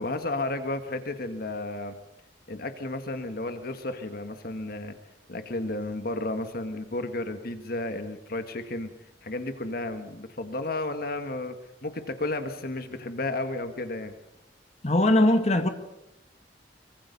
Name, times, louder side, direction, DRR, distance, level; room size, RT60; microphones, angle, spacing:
voice 1, 0.0-2.0 2.5-5.0 5.3-8.9 9.2-11.6 11.8-14.1, left 2 dB, 55° left, 1.7 m, -32 dB
voice 2, 14.8-15.7, left 1 dB, 35° left, 1.8 m, -20 dB
24.5 x 24.0 x 5.5 m
head